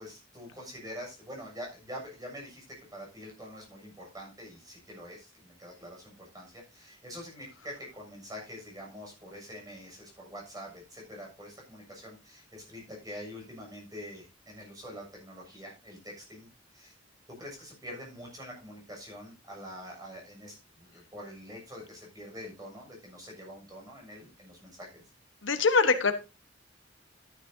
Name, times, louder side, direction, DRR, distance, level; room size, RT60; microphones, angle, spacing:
voice 1, 0.0-16.5 16.7-17.0 17.3-25.0, equal, 20° right, 0 dB, 6.8 m, -45 dB
voice 2, 25.4-26.1, left 4 dB, 80° left, 9 dB, 1.3 m, -23 dB
12.5 x 11.5 x 2.8 m, 0.27 s
head